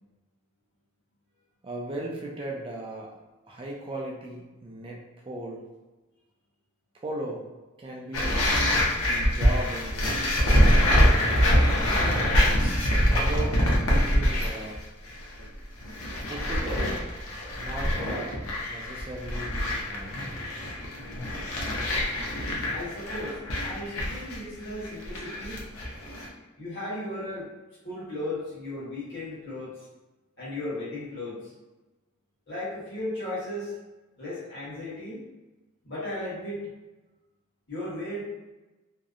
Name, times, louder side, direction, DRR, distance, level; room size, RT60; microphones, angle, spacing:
voice 1, 1.6-3.2 3.5-5.6 7.0-7.4 7.8-8.4 9.0-11.1 12.4-12.9 13.1-13.6 13.9-14.8 16.3-17.0 17.6-20.2, right 1 dB, 25° right, -2 dB, 0.3 m, -37 dB
sound 1, 8.1-14.8 15.0-15.4 15.8-26.3, equal, 80° left, 0.6 m, -25 dB
voice 2, 22.7-25.6 26.6-27.5 27.8-29.7 30.4-31.5 32.5-33.7 34.2-35.2 35.8-36.7 37.7-38.2, left 1 dB, 60° left, -8 dB, 1.3 m, -35 dB
2.7 x 2.0 x 2.4 m, 1.1 s
head